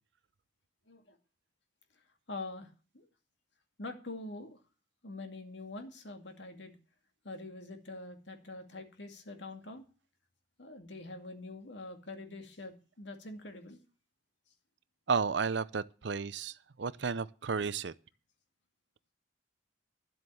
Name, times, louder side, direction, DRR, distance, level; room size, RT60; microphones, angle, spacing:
voice 1, 2.3-3.1 3.8-4.6 5.0-6.7 7.2-9.9 10.6-13.8, left 2 dB, 70° left, 2.3 m, -45 dB
voice 2, 15.1-17.9, right 5 dB, 70° right, 0.6 m, -33 dB
12.0 x 7.8 x 6.9 m
head